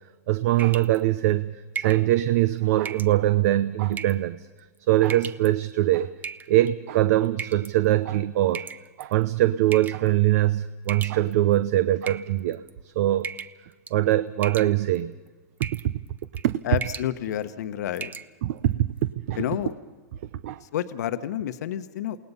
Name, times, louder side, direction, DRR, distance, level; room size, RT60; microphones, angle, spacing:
voice 1, 0.3-4.5 4.9-6.1 6.5-8.7 9.0-12.6 13.0-13.3 13.9-15.1 15.6-15.8 16.4-16.6 18.4-18.9 19.3-19.4 20.4-20.6, right 14 dB, 60° right, 14 dB, 0.7 m, -22 dB
sound 1, 0.6-1.0 1.7-2.1 2.8-3.1 3.9-4.3 5.0-5.5 6.2-6.7 7.4-7.7 8.5-9.1 9.7-10.1 10.9-11.5 12.0-12.7 13.2-13.6 13.9-14.1 14.4-15.0 15.6-15.9 16.2-16.5 16.8-17.1 17.5-17.6 18.0-18.3, right 6 dB, 20° right, 0.7 m, -36 dB
voice 2, 16.6-18.1 19.4-19.7 20.6-22.2, left 11 dB, 70° left, 11 dB, 1.0 m, -29 dB
28.5 x 19.0 x 5.5 m, 1.3 s
hypercardioid pair, 115°, 9 cm